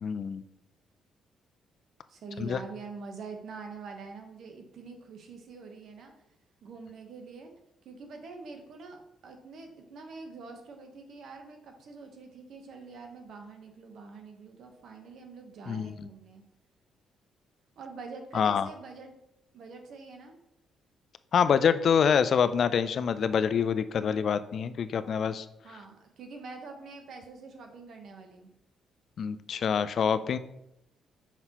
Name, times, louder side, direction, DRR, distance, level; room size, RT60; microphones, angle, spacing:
voice 1, 0.0-0.4 2.4-2.6 15.7-15.9 18.3-18.7 21.3-25.5 29.2-30.4, left 7 dB, 55° left, 13 dB, 0.3 m, -26 dB
voice 2, 2.1-6.1 6.6-7.5 7.8-16.4 17.8-19.2 19.5-20.4 25.6-28.5, right 4 dB, 65° right, 4 dB, 1.0 m, -45 dB
5.8 x 5.5 x 2.9 m, 0.84 s
cardioid pair, 90°, 0 cm